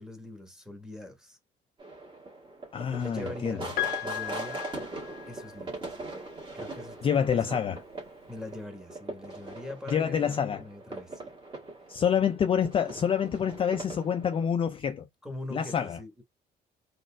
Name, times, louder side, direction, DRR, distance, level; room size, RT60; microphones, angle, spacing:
voice 1, 0.0-1.4 2.8-3.7 4.0-4.6 5.3-6.0 6.5-7.8 8.3-11.3 15.2-16.2, left 1 dB, 5° right, 1.1 m, -43 dB
sound 1, 1.8-14.5, right 2 dB, 30° right, 1.6 m, -41 dB
voice 2, 2.7-3.6 7.0-7.8 9.9-10.6 11.9-15.1 15.5-16.0, left 8 dB, 30° left, 0.4 m, -27 dB
Piano, 3.8-5.8 7.0-7.1, left 16 dB, 70° left, 0.7 m, -35 dB
4.1 x 2.4 x 2.2 m
cardioid pair, 110°, 17 cm